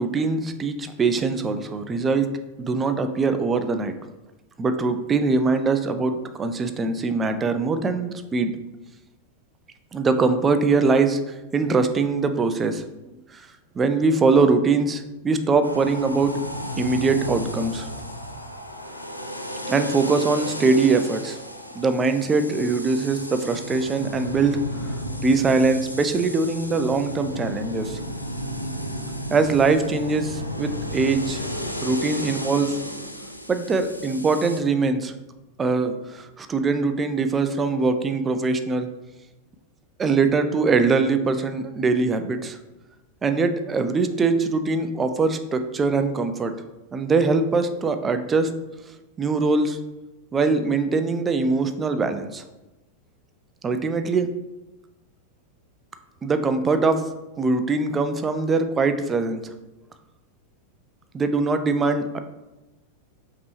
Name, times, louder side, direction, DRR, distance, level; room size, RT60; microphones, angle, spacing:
voice 1, 0.0-2.3 2.6-3.9 4.6-8.5 9.9-12.9 13.8-16.3 16.8-17.9 19.7-21.4 21.8-24.6 25.2-28.0 29.3-31.4 31.8-32.7 33.5-35.1 35.6-38.9 40.0-42.6 43.2-46.5 46.9-48.5 49.2-49.8 50.3-52.4 53.6-54.3 56.2-57.0 57.4-59.5 61.1-62.2, right 4 dB, 20° right, 8 dB, 0.4 m, -22 dB
sound 1, 15.6-34.6, equal, 90° left, 0.4 m, -33 dB
5.1 x 3.0 x 3.0 m, 1.0 s
figure-of-eight pair, 90°, 0 cm